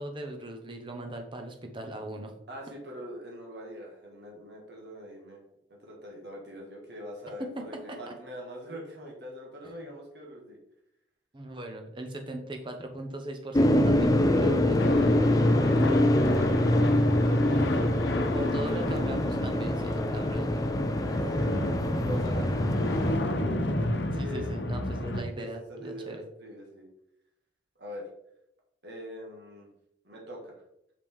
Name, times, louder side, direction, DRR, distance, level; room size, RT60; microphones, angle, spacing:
voice 1, 0.0-2.3 7.6-8.0 9.6-9.8 11.3-15.0 18.3-20.6 24.1-26.2, right 1 dB, 25° right, 4 dB, 1.0 m, -39 dB
voice 2, 2.5-5.4 5.8-10.6 16.5-17.3 21.1-23.6 24.2-24.7 25.4-26.9 27.8-28.1 28.8-29.7 30.0-30.6, equal, 65° right, -1 dB, 1.8 m, -43 dB
sound 1, 13.5-23.1, left 1 dB, 20° left, 0.4 m, -25 dB
sound 2, 14.8-25.2, left 1 dB, 70° left, 0.9 m, -31 dB
6.9 x 5.2 x 3.7 m, 0.79 s
head